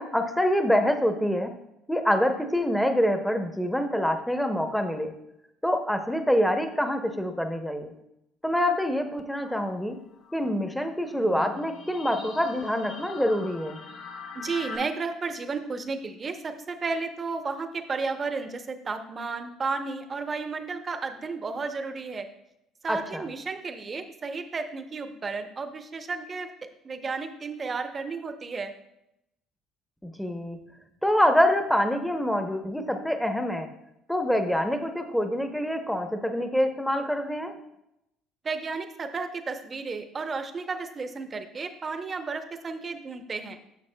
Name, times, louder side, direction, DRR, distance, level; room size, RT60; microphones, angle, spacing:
voice 1, 0.0-1.5 1.9-5.1 5.6-7.9 8.4-10.0 10.3-13.8 22.9-23.3 30.0-30.6 31.0-33.7 34.1-37.5, equal, 5° left, 6 dB, 0.8 m, -26 dB
sound 1, 9.4-14.8, left 4 dB, 65° left, 3.1 m, -43 dB
voice 2, 14.3-22.3 22.8-26.5 26.8-28.7 38.4-43.6, right 4 dB, 30° right, 8 dB, 0.7 m, -33 dB
11.0 x 6.5 x 2.2 m, 0.85 s
cardioid pair, 105°, 0 cm